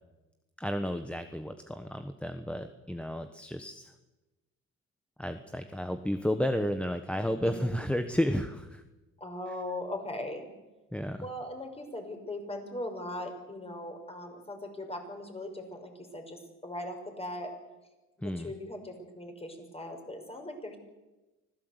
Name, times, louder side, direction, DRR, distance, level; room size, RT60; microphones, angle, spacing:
voice 1, 0.6-3.9 5.2-8.8 10.9-11.3 18.2-18.5, equal, 5° left, 7 dB, 1.3 m, -32 dB
voice 2, 7.3-7.7 9.2-10.5 11.2-17.5 18.2-20.8, left 1 dB, 20° left, 4 dB, 5.9 m, -39 dB
25.0 x 16.5 x 8.2 m, 1.1 s
cardioid pair, 90°, 30 cm